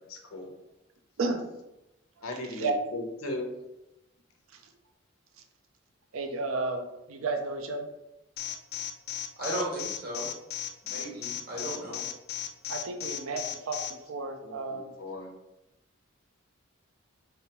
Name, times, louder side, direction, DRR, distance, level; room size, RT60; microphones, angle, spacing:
voice 1, 0.1-0.5 2.2-3.5 14.4-15.3, left 2 dB, 90° left, 2 dB, 0.7 m, -37 dB
voice 2, 6.1-7.9 12.7-14.9, right 3 dB, 80° right, 5 dB, 0.4 m, -32 dB
Alarm, 8.4-13.9, left 11 dB, 50° left, 0.3 m, -35 dB
voice 3, 9.4-10.3 10.8-12.0, right 1 dB, 50° right, -4 dB, 1.3 m, -35 dB
3.3 x 3.2 x 2.9 m, 0.92 s
head